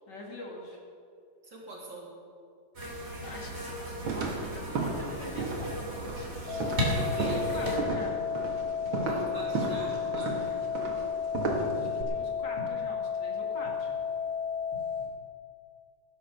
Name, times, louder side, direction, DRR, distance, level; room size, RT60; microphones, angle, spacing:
voice 1, 0.1-0.8 3.2-8.1 11.8-13.9, left 2 dB, 60° left, -1 dB, 2.9 m, -44 dB
voice 2, 1.4-2.1 6.9-7.7 9.1-10.7, right 1 dB, 60° right, -3 dB, 3.8 m, -43 dB
sound 1, 2.8-7.8, equal, 30° right, 3.2 m, -35 dB
sound 2, 4.0-12.0, right 3 dB, 80° right, 2.5 m, -34 dB
sound 3, 6.5-15.1, left 6 dB, 75° left, 3.6 m, -33 dB
16.0 x 9.3 x 6.7 m, 2.5 s
omnidirectional pair, 2.2 m